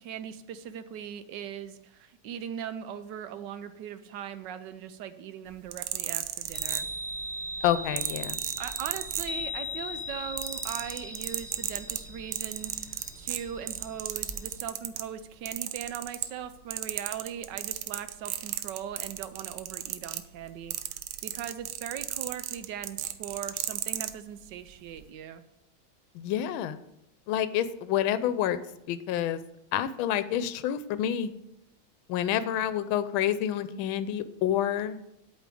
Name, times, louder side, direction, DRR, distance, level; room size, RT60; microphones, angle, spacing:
voice 1, 0.0-6.9 8.6-20.7 21.2-25.4, right 9 dB, 70° right, 11 dB, 1.2 m, -39 dB
sound 1, 5.5-7.3 8.0-9.7 10.0-15.1 15.5-16.5 16.7-24.1 24.9-25.0, right 13 dB, 90° right, 1.5 m, -34 dB
Chime, 6.4-14.6, left 1 dB, 20° right, 1.5 m, -39 dB
voice 2, 7.6-8.4 26.1-26.8 27.3-28.6 28.9-29.4 29.7-31.3 32.1-35.0, left 10 dB, 80° left, 13 dB, 1.4 m, -28 dB
8.3 x 5.2 x 7.6 m, 0.83 s
omnidirectional pair, 2.3 m